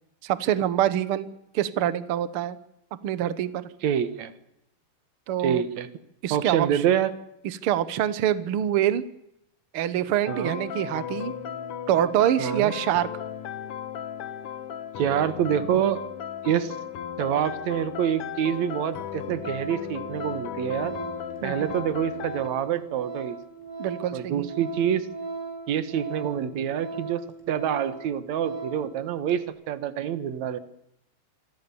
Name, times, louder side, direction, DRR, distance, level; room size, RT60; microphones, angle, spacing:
voice 1, 0.2-1.3 1.5-2.6 3.0-3.7 5.3-5.6 6.2-6.8 7.4-9.0 9.7-11.3 11.9-13.1 21.4-21.7 23.8-24.5, right 11 dB, 90° right, 15 dB, 1.2 m, -25 dB
voice 2, 3.8-4.3 5.4-5.9 6.3-7.1 10.3-10.6 12.4-12.7 15.0-16.0 16.4-16.8 17.2-20.9 21.4-23.4 24.1-25.1 25.7-30.6, right 9 dB, 60° right, 14 dB, 2.3 m, -26 dB
sound 1, 10.2-22.5, left 9 dB, 60° left, 1.6 m, -36 dB
Organ, 18.9-19.1 19.4-28.9 29.3-29.4, right 4 dB, 5° right, 5.7 m, -38 dB
27.5 x 22.0 x 7.0 m, 0.80 s
omnidirectional pair, 4.1 m